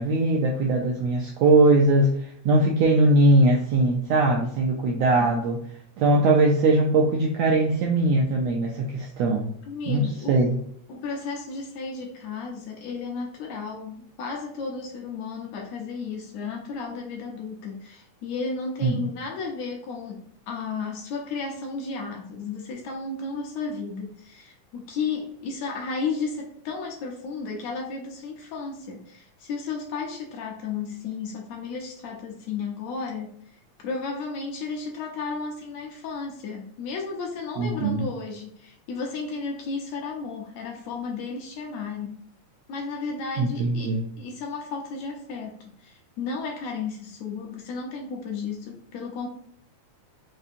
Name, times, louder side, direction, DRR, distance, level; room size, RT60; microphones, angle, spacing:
voice 1, 0.0-5.6 6.0-9.5 9.9-10.6 18.8-19.1 37.6-38.0 43.4-44.1, right 2 dB, 80° right, 0 dB, 1.5 m, -21 dB
voice 2, 4.8-5.3 9.7-10.4 10.9-42.2 42.7-49.3, left 4 dB, 75° left, 0 dB, 1.7 m, -33 dB
5.3 x 2.7 x 2.5 m, 0.68 s
omnidirectional pair, 3.6 m